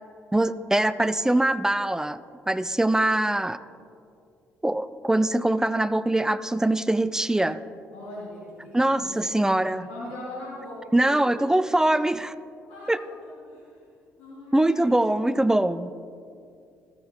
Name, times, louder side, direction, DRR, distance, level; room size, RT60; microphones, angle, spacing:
voice 1, 0.3-2.2 2.5-3.6 4.6-7.6 8.7-9.9 10.9-12.3 12.9-13.0 14.5-15.9, right 1 dB, 10° right, 15 dB, 0.3 m, -23 dB
voice 2, 7.9-11.3 12.6-12.9 13.2-13.9 14.2-15.0, left 1 dB, 80° left, -8 dB, 2.3 m, -41 dB
13.5 x 7.4 x 3.0 m, 2.4 s
hypercardioid pair, 50°, 7 cm